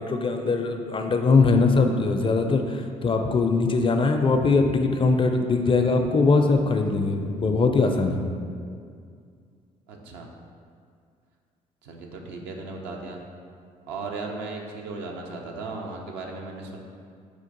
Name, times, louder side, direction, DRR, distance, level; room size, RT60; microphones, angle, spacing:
voice 1, 0.0-8.3, left 3 dB, 30° left, 5 dB, 0.4 m, -21 dB
voice 2, 9.9-10.3 11.8-13.2 13.9-16.8, right 3 dB, 70° right, 1 dB, 0.5 m, -36 dB
4.3 x 2.5 x 3.9 m, 2.2 s
hypercardioid pair, 45°, 18 cm